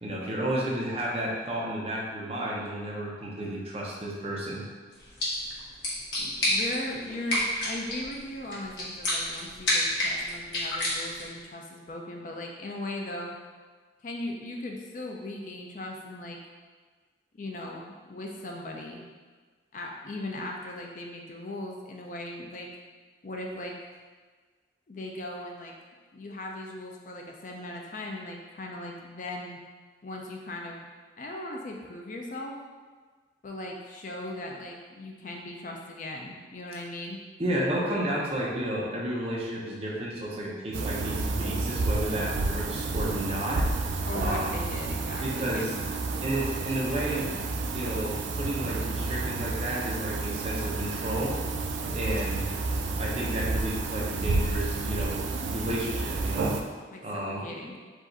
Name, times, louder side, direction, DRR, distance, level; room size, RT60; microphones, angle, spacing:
voice 1, 0.0-4.6 37.4-43.6 44.2-44.6 45.2-45.7 46.2-47.3 47.7-51.3 51.9-52.5 53.0-55.2 55.5-56.5 57.0-57.4, right 1 dB, 30° right, -4 dB, 0.8 m, -32 dB
sound 1, 4.9-11.4, left 1 dB, 75° left, 1.4 m, -30 dB
voice 2, 6.2-13.3 14.0-16.4 17.3-19.0 19.7-22.7 23.2-23.7 24.9-25.7 26.1-29.6 30.0-30.9 31.2-32.6 33.4-37.2 44.0-45.8 56.9-57.8, left 1 dB, 40° left, 0 dB, 0.4 m, -38 dB
sound 2, 40.7-56.6, right 3 dB, 75° right, 0.4 m, -30 dB
4.8 x 2.5 x 4.0 m, 1.5 s
head